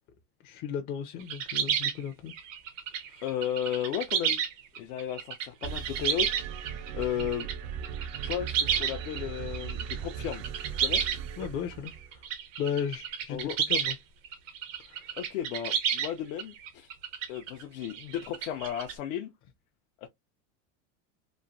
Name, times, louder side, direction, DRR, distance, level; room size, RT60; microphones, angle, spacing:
voice 1, 0.4-2.3 3.1-3.3 11.4-12.2 12.6-14.0 14.9-15.1, left 8 dB, 40° left, 0.5 m, -35 dB
sound 1, 1.2-7.5 7.8-9.2 9.5-11.5 11.9-14.0 14.2-18.9, right 8 dB, 85° right, 1.0 m, -31 dB
voice 2, 3.2-4.4 4.8-7.5 8.2-10.5 10.8-11.0 13.3-13.6 15.2-16.9 17.3-19.3 20.0-20.1, left 10 dB, 80° left, 0.7 m, -34 dB
sound 2, 5.6-12.2, right 8 dB, 45° right, 0.4 m, -38 dB
3.1 x 2.2 x 2.5 m
supercardioid pair, 135°, 37 cm